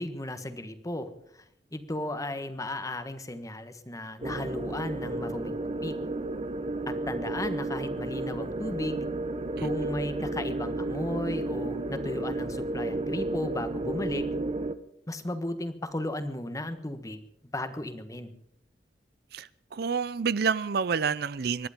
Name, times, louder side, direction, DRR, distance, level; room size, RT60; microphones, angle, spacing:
voice 1, 0.0-1.4 1.7-6.0 6.9-9.0 9.6-14.3 15.1-17.2 17.5-18.3, left 1 dB, 20° left, 1.4 m, -35 dB
sound 1, 4.2-14.8, right 2 dB, 35° right, 0.9 m, -32 dB
voice 2, 19.3-21.7, right 6 dB, 60° right, 0.5 m, -29 dB
24.5 x 11.0 x 5.1 m
head